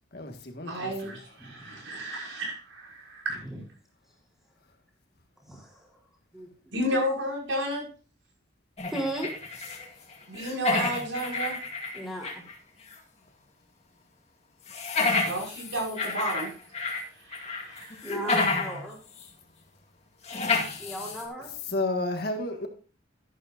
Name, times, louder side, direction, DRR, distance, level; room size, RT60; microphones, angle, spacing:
voice 1, 0.1-1.2 21.7-22.7, left 2 dB, 55° left, 4 dB, 1.7 m, -31 dB
voice 2, 0.6-3.4 6.7-7.8 10.3-11.6 15.2-16.5 17.2-18.1, equal, 85° right, -2 dB, 6.0 m, -32 dB
voice 3, 1.4-1.8 3.5-3.6 5.4-5.9 6.3-6.8 8.9-9.3 11.9-12.4 18.0-19.0 20.8-21.5, right 1 dB, ahead, -2 dB, 3.7 m, -36 dB
sound 1, 8.8-9.9 10.1-12.5 12.9-13.0 14.7-17.0 17.3-18.8 19.2-19.3 20.2-21.2, left 3 dB, 35° left, 2.1 m, -30 dB
12.0 x 11.5 x 2.6 m, 0.36 s
head